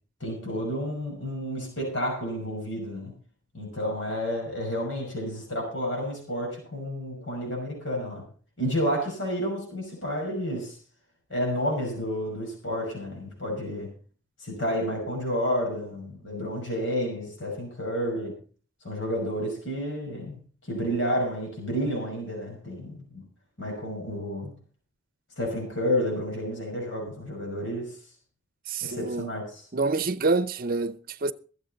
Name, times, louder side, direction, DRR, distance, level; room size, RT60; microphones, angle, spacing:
voice 1, 0.2-3.1 3.5-8.3 8.6-10.8 11.3-13.9 14.4-18.4 18.8-20.4 20.6-23.2 23.6-24.5 25.4-28.0 28.8-29.6, equal, 85° left, 5.8 m, -30 dB
voice 2, 28.7-29.3 29.7-31.3, right 3 dB, 50° right, 0.7 m, -27 dB
23.0 x 8.0 x 4.0 m
head